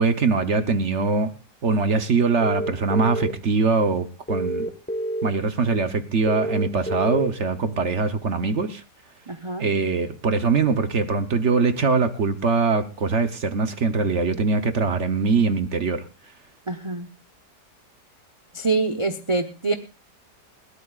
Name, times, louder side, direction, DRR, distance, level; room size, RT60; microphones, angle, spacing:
voice 1, 0.0-1.3 1.6-4.7 5.2-8.8 9.6-16.1, right 4 dB, 50° right, 1.0 m, -22 dB
sound 1, 2.4-3.3 4.3-5.3 6.3-7.3, right 1 dB, 5° left, 0.9 m, -27 dB
voice 2, 9.3-9.7 16.7-17.1 18.5-19.7, right 3 dB, 30° right, 0.5 m, -25 dB
21.0 x 17.0 x 2.4 m
omnidirectional pair, 1.9 m